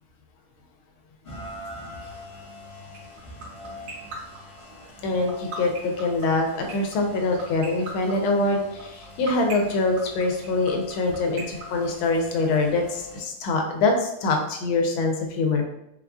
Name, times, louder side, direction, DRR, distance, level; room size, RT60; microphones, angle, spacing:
Rain, 1.2-13.2, left 1 dB, 35° left, 0.9 m, -44 dB
sound 1, 2.9-12.6, right 6 dB, 85° right, 1.9 m, -36 dB
voice 1, 5.0-15.6, left 3 dB, 85° left, 2 dB, 1.4 m, -24 dB
4.1 x 2.3 x 2.4 m, 0.82 s
omnidirectional pair, 2.2 m